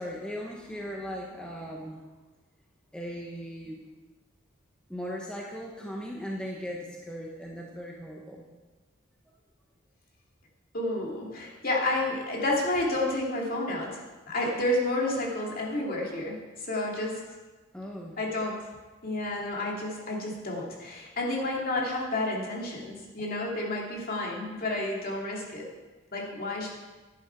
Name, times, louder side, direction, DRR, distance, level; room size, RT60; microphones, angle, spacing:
voice 1, 0.0-2.0 2.9-3.9 4.9-8.4 17.7-18.2, equal, 5° left, -2 dB, 1.1 m, -38 dB
voice 2, 10.7-14.0 14.3-17.2 18.2-18.6 19.0-25.7 26.1-26.7, left 2 dB, 45° left, -2 dB, 2.6 m, -30 dB
11.5 x 10.5 x 4.6 m, 1.2 s
head